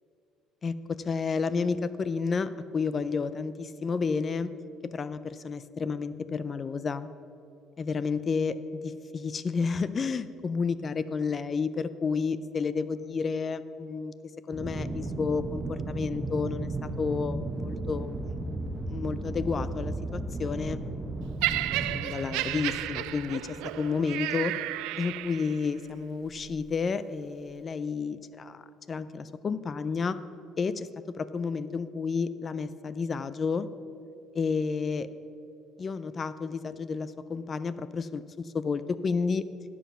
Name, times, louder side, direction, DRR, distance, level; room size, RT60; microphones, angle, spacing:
voice 1, 0.6-4.5 4.8-7.1 7.8-14.1 14.5-18.2 18.9-20.8 21.8-24.5 25.0-28.6 28.9-30.2 30.6-33.7 34.3-35.1 35.8-39.4, left 5 dB, 35° left, 14 dB, 0.4 m, -31 dB
Aircraft, 14.5-24.0, right 2 dB, 20° right, 0.8 m, -35 dB
Laughter, 21.4-25.7 26.5-26.6, right 15 dB, 85° right, 0.4 m, -32 dB
12.5 x 7.4 x 5.7 m, 2.5 s
cardioid pair, 110°, 0 cm